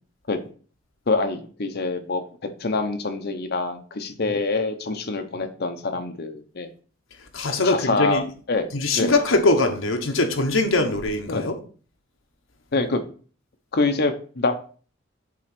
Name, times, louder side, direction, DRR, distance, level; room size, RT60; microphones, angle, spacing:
voice 1, 1.1-2.2 2.6-6.7 7.6-8.2 8.5-9.2 11.3-11.5 12.7-13.0 13.7-14.5, left 3 dB, 55° left, 0.9 m, -25 dB
voice 2, 7.3-8.2 8.7-11.5, left 2 dB, 80° left, 1.2 m, -22 dB
7.6 x 3.8 x 5.9 m
head